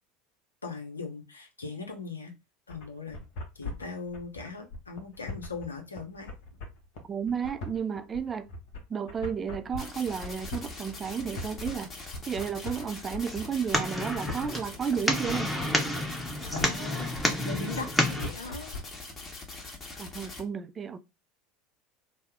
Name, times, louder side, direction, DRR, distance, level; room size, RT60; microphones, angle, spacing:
voice 1, 0.6-2.3 2.7-3.2 3.5-6.3 16.5-17.1 17.4-18.7, left 4 dB, 85° left, 0.7 m, -39 dB
sound 1, 2.7-18.8, left 3 dB, 60° left, 0.9 m, -41 dB
voice 2, 7.1-8.5 8.9-15.5 20.0-21.0, right 7 dB, 25° right, 0.4 m, -32 dB
sound 2, 9.8-20.4, left 3 dB, 30° left, 1.2 m, -43 dB
sound 3, 13.3-18.3, left 1 dB, 5° left, 0.8 m, -30 dB
2.8 x 2.1 x 3.6 m
figure-of-eight pair, 75°, 0 cm